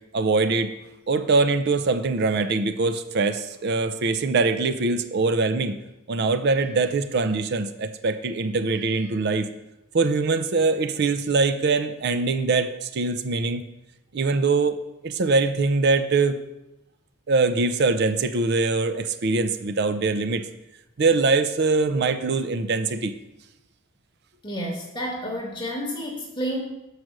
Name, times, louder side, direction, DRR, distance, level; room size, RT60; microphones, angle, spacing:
voice 1, 0.1-0.7 1.1-5.7 6.1-9.5 9.9-13.6 14.1-16.4 17.3-20.5 21.0-23.1, right 3 dB, 55° right, 10 dB, 0.5 m, -23 dB
voice 2, 24.4-26.6, equal, 25° left, 0 dB, 1.1 m, -30 dB
6.1 x 4.9 x 6.5 m, 0.92 s
head